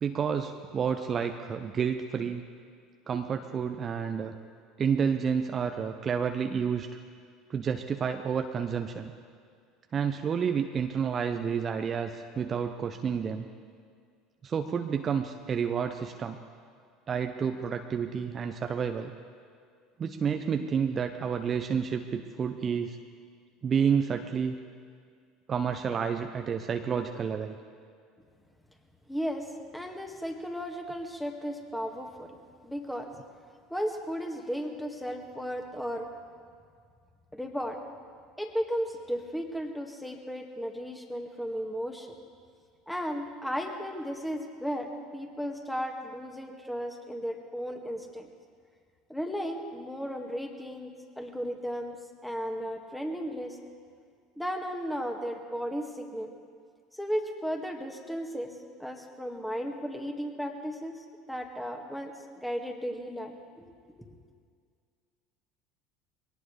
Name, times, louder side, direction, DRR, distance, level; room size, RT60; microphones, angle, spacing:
voice 1, 0.0-2.4 3.1-4.3 4.8-6.9 7.5-9.1 9.9-13.5 14.4-16.4 17.1-19.1 20.0-23.0 23.6-24.6 25.5-27.6, right 7 dB, 35° right, 6 dB, 0.8 m, -30 dB
voice 2, 29.1-32.4 32.6-33.1 33.7-36.1 37.3-37.8 38.4-42.1 42.9-48.3 49.1-53.6 54.4-56.3 56.9-64.1, equal, 5° left, 2 dB, 2.0 m, -35 dB
22.5 x 18.0 x 3.4 m, 2.1 s
figure-of-eight pair, 70°, 0 cm